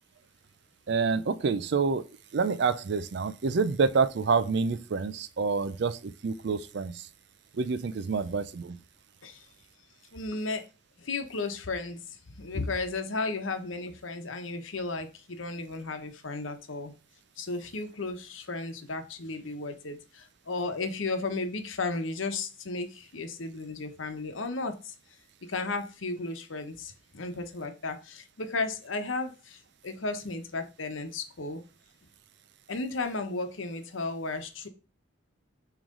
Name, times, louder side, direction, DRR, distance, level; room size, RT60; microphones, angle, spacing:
voice 1, 0.9-2.0 2.3-7.1 7.5-8.8, right 5 dB, 60° right, 0.4 m, -27 dB
voice 2, 10.1-10.6 11.0-16.9 17.4-24.9 25.5-31.6 32.7-34.7, left 3 dB, 80° left, 1.0 m, -34 dB
8.9 x 3.2 x 3.7 m
head